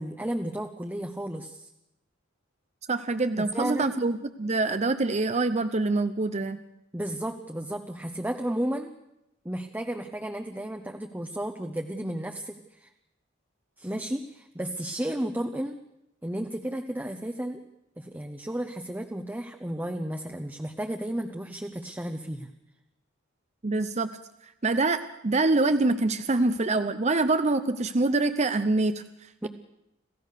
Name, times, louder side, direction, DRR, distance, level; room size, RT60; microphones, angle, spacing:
voice 1, 0.0-1.7 3.4-3.9 6.9-8.9 9.4-12.9 13.8-15.8 16.2-17.6 18.0-22.5 29.4-29.5, right 1 dB, 10° right, 5 dB, 0.9 m, -33 dB
voice 2, 2.9-6.6 23.6-24.1 24.6-29.0, right 3 dB, 35° right, 11 dB, 0.7 m, -25 dB
27.0 x 15.5 x 6.7 m, 0.88 s
head